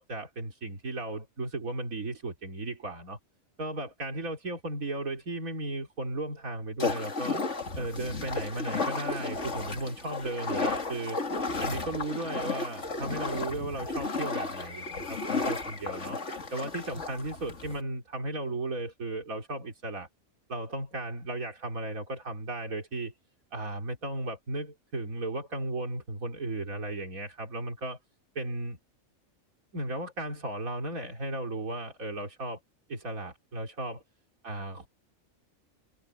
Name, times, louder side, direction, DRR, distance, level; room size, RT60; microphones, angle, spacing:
voice 1, 0.0-3.2 3.6-7.4 7.8-11.2 11.6-16.2 16.5-20.1 20.5-23.1 23.5-28.0 28.4-28.8 29.7-32.6 32.9-34.0 34.4-34.9, right 2 dB, 90° right, 3.8 m, -35 dB
sound 1, 6.8-17.8, left 3 dB, 60° left, 2.6 m, -33 dB
omnidirectional pair, 1.4 m